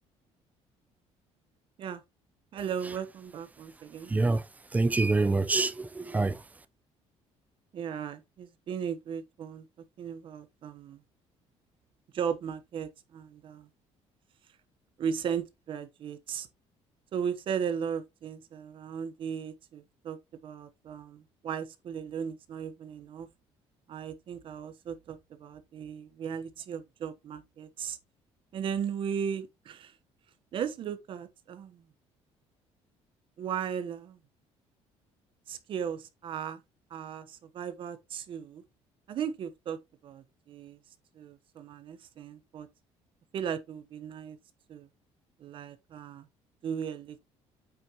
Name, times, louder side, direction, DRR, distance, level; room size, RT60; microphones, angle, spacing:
voice 1, 2.5-4.1 7.7-9.6 10.0-11.0 12.1-13.7 15.0-16.5 17.1-20.2 20.4-23.3 23.9-28.0 28.5-29.9 30.5-31.8 33.4-34.2 35.5-36.6 36.9-38.6 39.1-40.8 41.1-42.7 43.3-44.4 44.7-44.9 45.4-46.2 46.6-47.2, right 7 dB, 45° right, 1.1 m, -36 dB
voice 2, 4.1-4.4 4.7-6.4, right 3 dB, 15° right, 0.6 m, -26 dB
8.6 x 6.2 x 3.0 m
cardioid pair, 155°, 12 cm